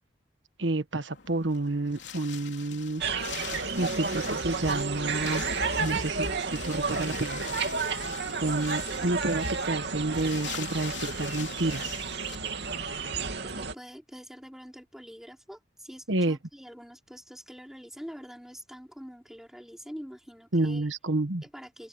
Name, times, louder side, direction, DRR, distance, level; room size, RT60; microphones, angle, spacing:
voice 1, 0.6-3.0 3.8-5.5 5.8-7.5 8.4-12.0 16.1-16.4 20.5-21.4, right 2 dB, 90° right, 1.4 m, -29 dB
Wind, 1.1-12.4, left 9 dB, 70° left, 3.7 m, -43 dB
sound 1, 3.0-13.7, right 4 dB, 65° right, 2.9 m, -31 dB
voice 2, 13.4-20.9 21.4-21.9, equal, 5° right, 5.3 m, -45 dB
open air
head